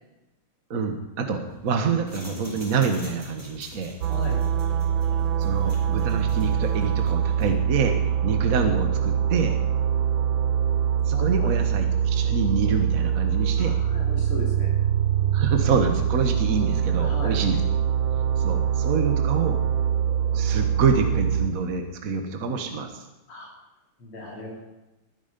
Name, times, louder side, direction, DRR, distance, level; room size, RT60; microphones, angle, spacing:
voice 1, 0.7-3.9 5.4-8.0 8.2-9.6 11.0-13.8 15.3-17.6 18.4-19.6 20.3-22.9, right 5 dB, 45° right, 5 dB, 1.6 m, -26 dB
sound 1, 1.5-7.6, equal, 5° right, 5.2 m, -44 dB
sound 2, 4.0-21.5, right 8 dB, 75° right, 1.4 m, -24 dB
voice 2, 4.1-4.4 11.1-11.5 13.6-14.7 17.0-17.4 23.3-23.5 24.0-24.6, left 3 dB, 80° left, -3 dB, 3.7 m, -37 dB
20.0 x 9.9 x 5.3 m, 0.98 s
omnidirectional pair, 2.3 m